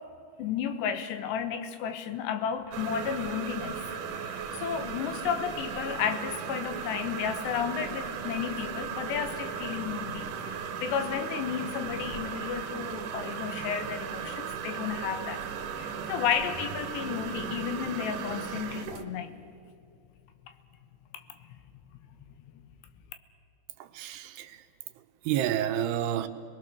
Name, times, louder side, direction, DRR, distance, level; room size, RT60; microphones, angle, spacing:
voice 1, 0.4-3.8 4.3-15.4 15.8-19.4 21.1-21.2, left 8 dB, 85° left, 9 dB, 3.3 m, -33 dB
sound 1, 2.7-19.0, right 7 dB, 60° right, 2.4 m, -36 dB
voice 2, 23.8-24.6 25.3-26.3, right 11 dB, 80° right, 8 dB, 2.8 m, -29 dB
30.0 x 21.0 x 6.6 m, 2.4 s
omnidirectional pair, 5.0 m